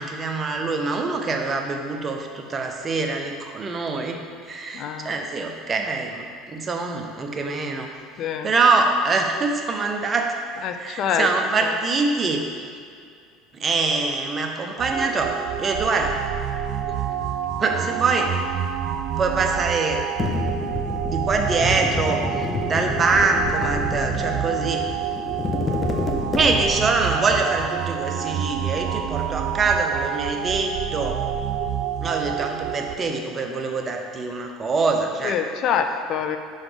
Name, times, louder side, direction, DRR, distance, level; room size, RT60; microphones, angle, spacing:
voice 1, 0.0-4.2 4.5-7.9 8.4-12.5 13.6-16.2 17.6-18.3 19.2-20.0 21.1-22.2 22.7-24.9 26.3-31.2 32.0-35.4, right 3 dB, 30° right, 3 dB, 0.8 m, -24 dB
voice 2, 4.7-5.1 8.2-8.5 10.6-11.3 11.6-11.7 35.2-36.4, left 8 dB, 55° left, 7 dB, 0.4 m, -25 dB
sound 1, 14.8-33.0, right 9 dB, 60° right, 0.4 m, -28 dB
sound 2, 20.2-26.9, left 3 dB, 25° left, 0.8 m, -29 dB
5.9 x 4.1 x 5.1 m, 2.2 s
supercardioid pair, 95°, 0 cm